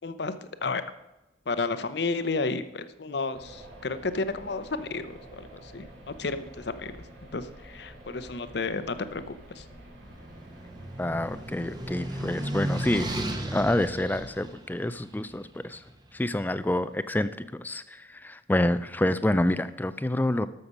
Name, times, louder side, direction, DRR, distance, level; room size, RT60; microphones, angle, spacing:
voice 1, 0.0-0.8 1.5-6.9 7.3-9.6, left 3 dB, 65° left, 12 dB, 0.7 m, -32 dB
sound 1, 3.3-14.3, right 1 dB, 85° right, 3.9 m, -48 dB
sound 2, 9.7-15.9, right 1 dB, 20° right, 0.9 m, -35 dB
voice 2, 11.0-15.8 16.1-20.5, left 1 dB, 10° left, 14 dB, 0.3 m, -28 dB
13.0 x 6.7 x 5.4 m, 0.98 s
head